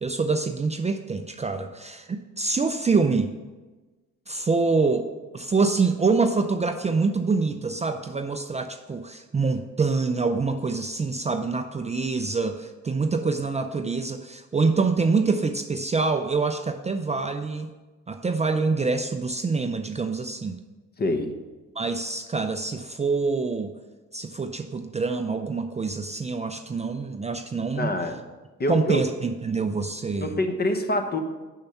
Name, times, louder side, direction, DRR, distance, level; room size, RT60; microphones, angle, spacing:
voice 1, 0.0-3.3 4.3-17.7 18.1-20.6 21.8-23.7 24.1-27.9 28.7-30.3, right 4 dB, 20° right, 7 dB, 0.5 m, -25 dB
voice 2, 21.0-21.4 27.8-28.2 28.6-29.0 30.2-31.2, left 1 dB, 30° left, 6 dB, 1.0 m, -25 dB
6.9 x 5.6 x 7.0 m, 1.2 s
cardioid pair, 90°, 30 cm